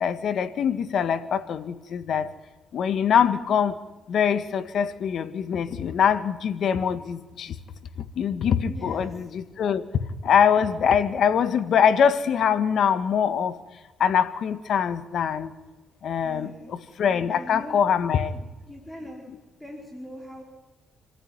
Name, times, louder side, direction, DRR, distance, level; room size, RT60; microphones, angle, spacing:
voice 1, 0.0-2.3 2.7-3.7 4.1-7.5 8.2-9.8 10.2-13.5 14.0-15.5 16.0-16.5 17.0-18.3, left 7 dB, 65° left, 12 dB, 1.8 m, -23 dB
voice 2, 8.7-9.2 16.2-16.7 17.3-17.8 18.6-19.2 19.6-20.4, equal, 10° left, 1 dB, 4.8 m, -41 dB
28.5 x 14.5 x 9.7 m, 1.2 s
cardioid pair, 90°, 0 cm